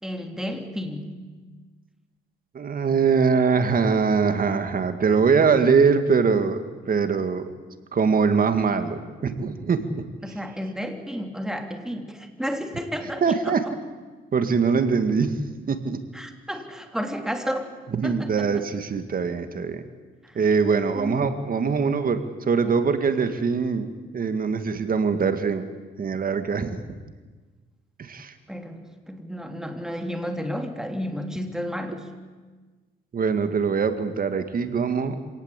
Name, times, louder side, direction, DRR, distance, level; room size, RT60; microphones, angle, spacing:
voice 1, 0.0-1.1 10.2-13.7 16.1-17.7 18.0-18.7 20.2-20.4 20.9-21.3 28.5-32.1, equal, 5° right, 5 dB, 3.0 m, -32 dB
voice 2, 2.5-6.6 6.9-7.5 7.9-10.0 13.2-13.6 14.3-15.4 15.7-16.0 17.9-19.8 20.4-25.7 26.0-26.9 28.0-28.3 33.1-35.2, right 5 dB, 45° right, 9 dB, 2.2 m, -22 dB
26.5 x 18.5 x 8.4 m, 1.4 s
cardioid pair, 90°, 20 cm